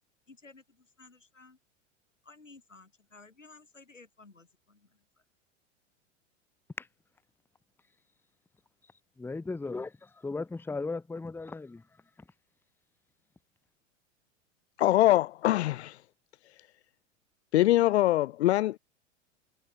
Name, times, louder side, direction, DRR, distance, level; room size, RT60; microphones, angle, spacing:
voice 1, 0.3-1.6 2.2-5.2, left 3 dB, 85° left, 5.8 m, -55 dB
voice 2, 9.2-11.8, left 3 dB, 5° left, 1.1 m, -36 dB
voice 3, 14.8-16.0 17.5-18.8, left 15 dB, 65° left, 0.5 m, -23 dB
figure-of-eight pair, 95°, 37 cm